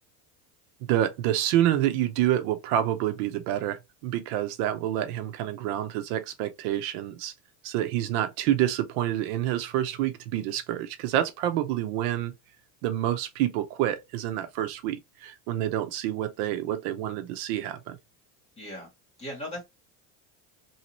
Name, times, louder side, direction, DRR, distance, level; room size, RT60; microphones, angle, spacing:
voice 1, 0.9-7.3 7.6-12.3 12.8-18.0, right 12 dB, 80° right, 0.8 m, -28 dB
voice 2, 18.6-18.9 19.2-19.6, left 1 dB, 15° left, 1.9 m, -37 dB
3.1 x 2.8 x 2.9 m
cardioid pair, 175°, 45 cm